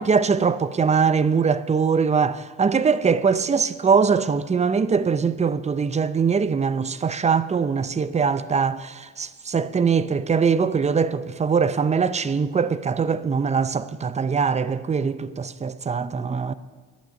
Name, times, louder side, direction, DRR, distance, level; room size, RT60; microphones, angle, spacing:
voice 1, 0.0-16.5, right 5 dB, 25° right, 0.5 m, -22 dB
10.5 x 10.5 x 5.2 m
cardioid pair, 90°, 30 cm